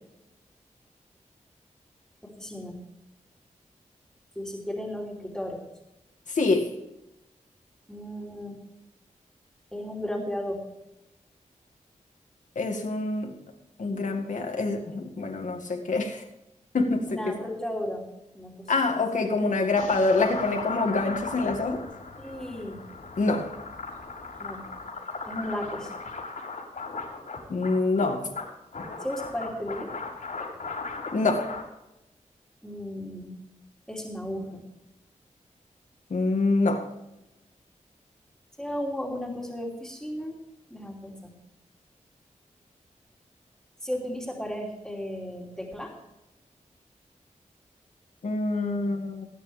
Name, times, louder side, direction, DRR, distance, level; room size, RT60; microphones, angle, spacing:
voice 1, 2.2-2.8 4.3-5.6 7.9-8.6 9.7-10.6 17.1-18.1 18.3-19.3 22.2-22.8 24.4-24.7 25.3-25.9 29.0-29.9 32.6-33.4 33.9-34.6 38.6-40.4 40.7-41.3 43.8-45.9, equal, 5° left, -2 dB, 2.9 m, -34 dB
voice 2, 6.3-6.7 12.6-13.3 13.8-16.2 16.7-17.3 18.7-21.8 23.2-23.5 27.5-28.3 31.1-31.5 36.1-36.9 48.2-49.3, left 3 dB, 75° left, 3 dB, 2.0 m, -26 dB
sound 1, 19.8-31.6, left 4 dB, 90° left, 4.0 m, -37 dB
19.0 x 9.8 x 3.4 m, 0.93 s
wide cardioid pair, 120°, 13 cm